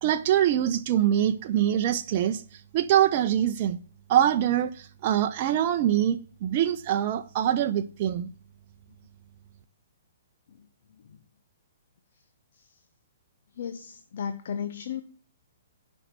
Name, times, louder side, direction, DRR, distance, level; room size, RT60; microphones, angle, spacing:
voice 1, 0.0-3.8 4.1-8.3, right 11 dB, 40° right, 0.7 m, -24 dB
voice 2, 13.6-15.0, left 7 dB, 55° left, 0.9 m, -34 dB
10.0 x 5.5 x 7.5 m
figure-of-eight pair, 120°, 0 cm